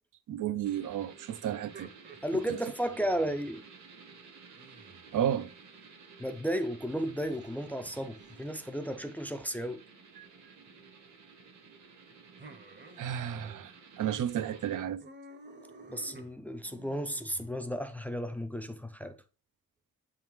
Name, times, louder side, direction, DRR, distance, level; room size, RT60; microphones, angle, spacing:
voice 1, 0.3-1.9 5.1-5.5 13.0-13.7 14.0-15.0, right 10 dB, 90° right, 0.5 m, -32 dB
sound 1, 0.6-14.8, right 5 dB, 65° right, 1.2 m, -54 dB
sound 2, 1.5-3.5 4.6-6.0 6.9-8.5 10.1-10.6 12.4-13.6 13.9-14.0 14.3-17.9, right 3 dB, 35° right, 0.7 m, -53 dB
voice 2, 2.2-3.7 6.2-9.8 15.9-19.2, equal, 5° left, 0.3 m, -34 dB
8.3 x 3.7 x 3.0 m
wide cardioid pair, 175°, 31 cm